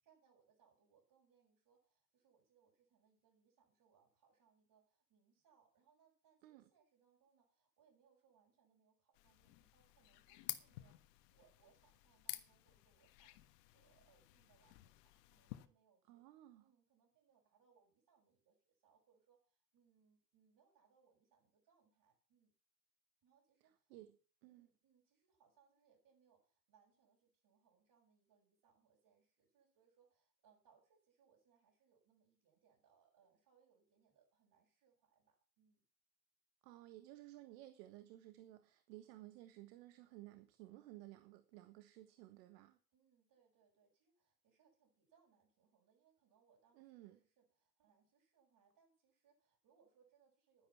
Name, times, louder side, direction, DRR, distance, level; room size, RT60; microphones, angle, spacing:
voice 1, 0.0-13.4 13.7-16.2 16.6-22.5 23.2-23.9 24.4-35.8 42.9-50.7, right 6 dB, 45° right, 6.4 m, -75 dB
sound 1, 9.1-15.7, left 17 dB, 75° left, 1.5 m, -52 dB
voice 2, 16.1-16.6 23.9-24.7 36.6-42.8 46.7-47.2, right 15 dB, 75° right, 1.5 m, -57 dB
12.0 x 10.0 x 5.8 m
supercardioid pair, 105°, 49 cm